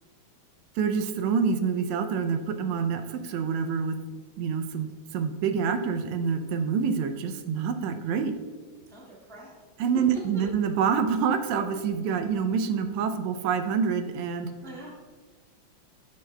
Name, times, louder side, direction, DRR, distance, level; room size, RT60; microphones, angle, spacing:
voice 1, 0.8-4.0 4.4-8.3 9.8-14.5, right 6 dB, 80° right, 7 dB, 1.8 m, -27 dB
voice 2, 8.9-9.5 10.1-10.4 14.6-14.9, right 2 dB, ahead, -5 dB, 0.7 m, -43 dB
12.0 x 6.9 x 2.2 m, 1.5 s
omnidirectional pair, 3.3 m